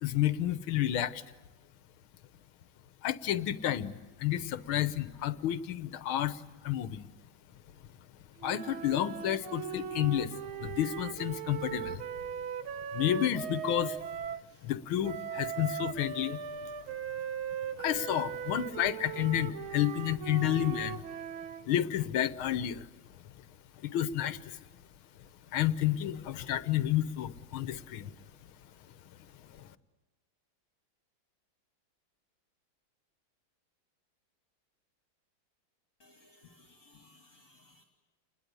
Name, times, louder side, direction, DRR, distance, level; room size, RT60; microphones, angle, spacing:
voice 1, 0.0-1.2 3.0-3.9 4.2-6.4 6.6-7.1 8.4-10.3 10.6-12.0 12.9-14.0 14.6-16.4 17.8-21.0 21.7-22.8 23.8-24.6 25.5-28.1, left 12 dB, 85° left, 14 dB, 1.8 m, -30 dB
sound 1, 8.4-14.5 15.0-21.7, right 8 dB, 80° right, 1.9 m, -39 dB
voice 2, 36.0-37.8, left 2 dB, 40° left, 4 dB, 2.7 m, -60 dB
28.0 x 21.0 x 8.3 m, 1.2 s
omnidirectional pair, 2.2 m